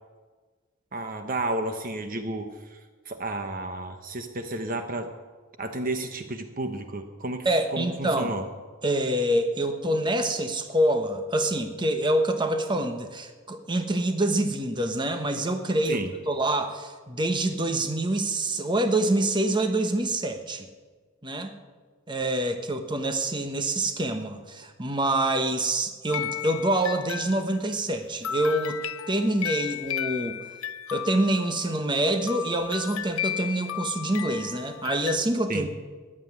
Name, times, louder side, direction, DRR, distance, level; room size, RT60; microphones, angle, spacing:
voice 1, 0.9-2.8 3.1-5.1 5.6-7.5 7.7-8.4 15.9-16.1 35.5-35.7, right 2 dB, 40° right, 6 dB, 1.0 m, -32 dB
voice 2, 7.4-8.3 8.8-20.7 21.2-21.5 22.1-28.8 29.1-30.4 30.9-35.7, right 1 dB, 20° right, 6 dB, 1.2 m, -26 dB
sound 1, 26.1-27.7 28.2-35.2, left 10 dB, 85° left, 0.6 m, -34 dB
15.0 x 10.0 x 9.5 m, 1.4 s
head